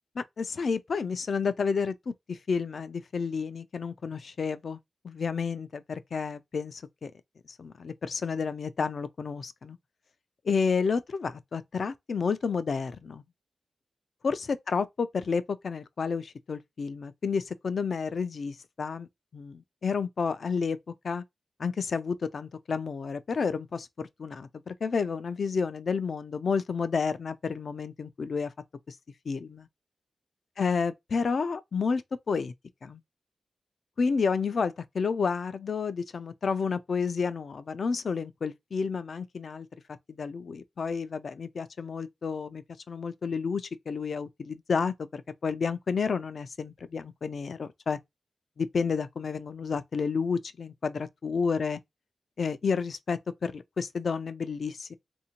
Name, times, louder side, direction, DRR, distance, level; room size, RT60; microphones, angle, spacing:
voice 1, 0.2-4.8 5.0-7.1 7.6-9.8 10.4-13.2 14.2-19.1 19.3-20.8 21.0-21.2 21.6-28.5 28.9-29.0 29.3-29.7 30.6-32.0 32.3-32.5 32.8-33.0 34.0-39.7 40.1-48.0 48.6-51.8 52.4-54.9, left 5 dB, 60° left, 0.3 m, -30 dB
3.6 x 2.6 x 2.8 m
wide cardioid pair, 145°, 0 cm